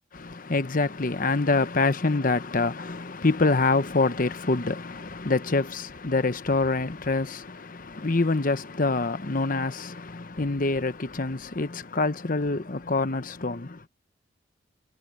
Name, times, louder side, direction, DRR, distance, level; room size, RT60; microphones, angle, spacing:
voice 1, 0.1-13.8, left 3 dB, 50° left, 1.0 m, -26 dB
head